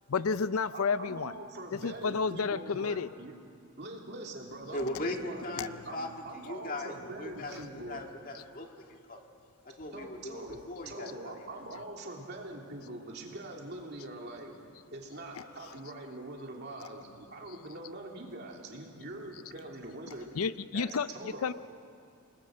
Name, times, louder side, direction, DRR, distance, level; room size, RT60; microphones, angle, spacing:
voice 1, 0.1-1.3 1.8-3.1 5.6-5.7 20.4-21.1 21.4-21.5, left 5 dB, 80° left, 15 dB, 0.5 m, -30 dB
voice 2, 0.7-3.4 3.8-8.0 9.9-14.5 14.9-20.3 20.7-21.5, right 2 dB, 50° right, 0 dB, 3.0 m, -43 dB
voice 3, 4.7-6.1 6.3-7.6 7.9-9.2 9.6-11.3, left 1 dB, 40° left, 3 dB, 1.8 m, -39 dB
29.0 x 20.0 x 6.4 m, 2.4 s
head